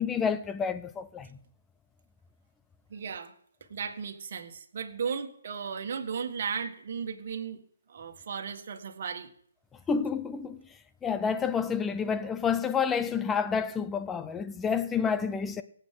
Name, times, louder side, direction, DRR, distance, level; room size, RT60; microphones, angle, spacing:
voice 1, 0.0-1.4 9.9-10.6 11.0-15.6, left 6 dB, 10° left, 0.6 m, -29 dB
voice 2, 2.9-3.3 3.7-7.6 7.9-9.3, right 6 dB, 50° right, 1.8 m, -35 dB
24.0 x 8.1 x 3.9 m
figure-of-eight pair, 140°, 0 cm